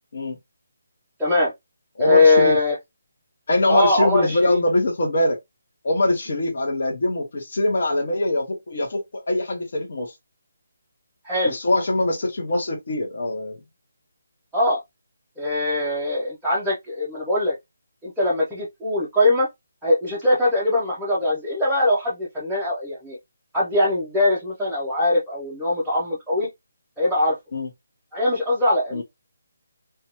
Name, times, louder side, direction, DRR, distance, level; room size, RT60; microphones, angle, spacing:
voice 1, 1.2-1.5 2.0-2.8 3.7-4.6 11.2-11.6 14.5-14.8 15.4-17.5 18.0-19.5 19.8-23.2 23.5-26.5 27.0-27.4 28.1-29.0, left 2 dB, ahead, 0.5 m, -21 dB
voice 2, 2.0-2.6 3.5-5.4 5.8-10.1 11.5-13.6 27.5-27.7 28.9-29.0, left 1 dB, 45° left, 0.8 m, -23 dB
2.7 x 2.2 x 2.8 m
hypercardioid pair, 175°, 0 cm